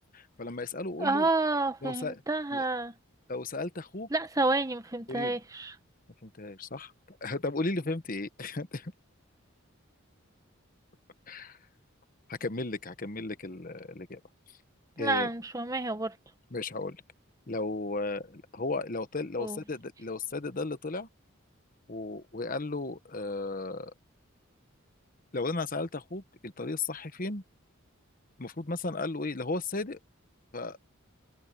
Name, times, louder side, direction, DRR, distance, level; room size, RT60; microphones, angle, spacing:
voice 1, 0.1-1.3 1.8-2.2 2.5-2.6 3.3-4.1 5.1-5.4 6.2-8.9 11.3-11.6 12.3-14.2 15.0-15.3 16.5-17.0 17.5-21.1 21.9-23.9 25.3-27.4 28.4-30.0 30.5-30.8, left 3 dB, 40° left, 1.1 m, -35 dB
voice 2, 1.0-2.9 4.1-5.7 15.0-16.2 19.4-19.6, right 2 dB, 15° right, 1.0 m, -29 dB
head